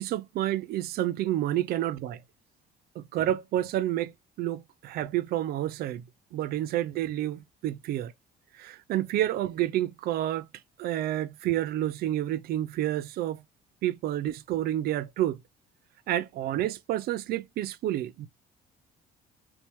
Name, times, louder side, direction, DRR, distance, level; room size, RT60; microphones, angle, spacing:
voice 1, 0.0-2.2 3.0-4.1 4.4-6.0 6.3-8.1 8.5-10.5 10.8-13.4 13.8-15.4 16.1-18.3, right 13 dB, 65° right, 0.4 m, -29 dB
4.3 x 2.3 x 2.9 m
cardioid pair, 110°, 17 cm